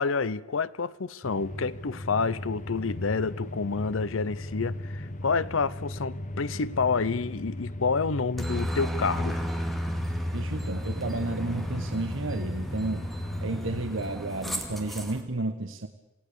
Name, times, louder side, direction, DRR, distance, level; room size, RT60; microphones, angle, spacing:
voice 1, 0.0-9.4, left 4 dB, 90° left, 0.7 m, -28 dB
sound 1, 1.2-13.8, left 1 dB, 40° left, 1.1 m, -38 dB
sound 2, 2.5-14.1, left 1 dB, 70° left, 5.3 m, -49 dB
Aircraft, 8.4-15.2, equal, ahead, 2.3 m, -33 dB
voice 2, 10.3-13.1 13.4-15.9, right 2 dB, 80° right, 1.2 m, -32 dB
27.5 x 17.5 x 6.9 m
head